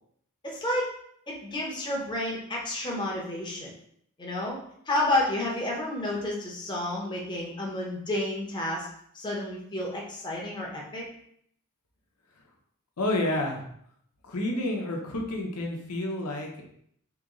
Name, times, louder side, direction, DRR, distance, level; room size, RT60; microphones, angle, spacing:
voice 1, 0.4-0.9 1.3-3.7 4.2-4.6 4.9-8.9 9.1-11.0, left 1 dB, 20° left, -3 dB, 0.9 m, -30 dB
voice 2, 13.0-13.6 14.2-16.7, left 1 dB, 85° left, 1 dB, 0.9 m, -29 dB
3.1 x 3.1 x 3.7 m, 0.67 s
head